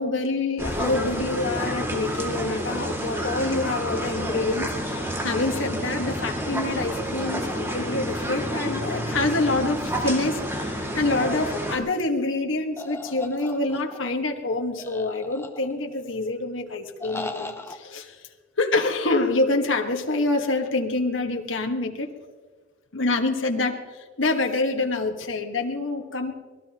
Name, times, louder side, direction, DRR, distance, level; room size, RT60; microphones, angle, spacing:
voice 1, 0.0-18.2 18.6-22.1 22.9-26.3, left 2 dB, 85° left, 4 dB, 1.6 m, -26 dB
sound 1, 0.6-11.8, equal, 15° right, 2.2 m, -29 dB
sound 2, 12.8-14.1 14.8-15.9 17.0-17.8, left 2 dB, 15° left, 0.9 m, -37 dB
25.0 x 19.0 x 3.0 m, 1.5 s
head